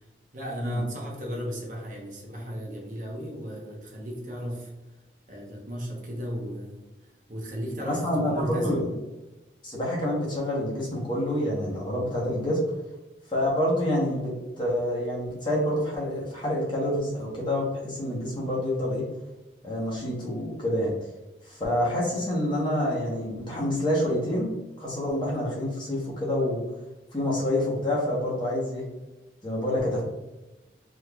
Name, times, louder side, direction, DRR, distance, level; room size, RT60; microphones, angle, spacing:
voice 1, 0.3-4.7 5.3-6.9 7.3-8.8, equal, 45° right, -2 dB, 0.9 m, -35 dB
voice 2, 7.8-9.0 9.6-12.6 13.3-19.0 19.6-20.9 21.5-26.6 27.1-28.9 29.4-30.0, left 1 dB, 25° left, -4 dB, 0.9 m, -27 dB
3.6 x 3.1 x 2.3 m, 1.1 s
head